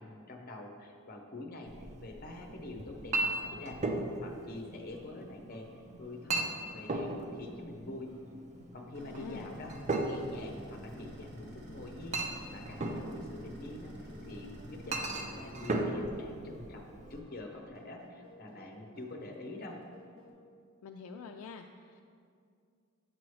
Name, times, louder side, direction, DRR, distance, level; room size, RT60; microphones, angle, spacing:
voice 1, 0.0-3.8 4.2-8.1 8.7-19.8, left 2 dB, 45° left, 2 dB, 0.7 m, -46 dB
Chink clink, 1.7-17.2, right 2 dB, 30° right, 0.5 m, -38 dB
sound 1, 2.7-20.3, equal, 75° right, 1.5 m, -56 dB
sound 2, 8.9-15.5, equal, 50° right, 1.1 m, -49 dB
voice 2, 9.1-9.5 20.8-22.0, left 5 dB, 90° left, 4 dB, 0.3 m, -46 dB
7.7 x 6.0 x 3.1 m, 2.3 s
head